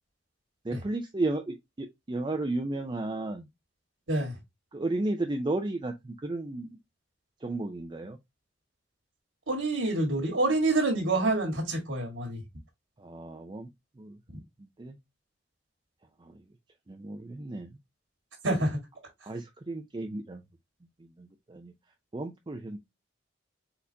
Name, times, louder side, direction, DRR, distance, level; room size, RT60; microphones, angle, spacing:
voice 1, 0.6-3.5 4.7-6.8 7.4-8.2 13.0-13.7 14.0-14.2 14.6-15.0 16.2-16.4 16.9-17.7 19.2-20.4 21.2-21.7 22.1-22.8, right 2 dB, 25° right, 0.5 m, -33 dB
voice 2, 9.5-12.4 18.4-18.8, right 2 dB, 90° right, 1.8 m, -27 dB
4.2 x 4.0 x 2.7 m
head